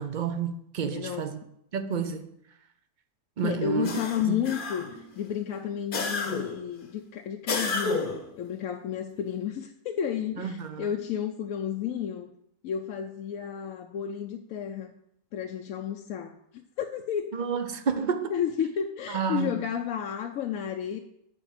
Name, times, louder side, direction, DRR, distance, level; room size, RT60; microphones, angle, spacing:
voice 1, 0.0-1.4 1.7-2.3 3.4-3.9 4.2-4.4 10.4-10.9 17.3-18.3 19.1-19.5, right 6 dB, 50° right, 0.6 m, -30 dB
voice 2, 0.8-1.3 3.4-12.3 12.6-14.9 15.3-17.4 18.3-21.0, left 9 dB, 75° left, 1.0 m, -32 dB
sound 1, 3.8-5.0 5.9-6.6 7.5-8.3, left 3 dB, 40° left, 1.0 m, -30 dB
9.1 x 4.5 x 7.2 m
omnidirectional pair, 1.5 m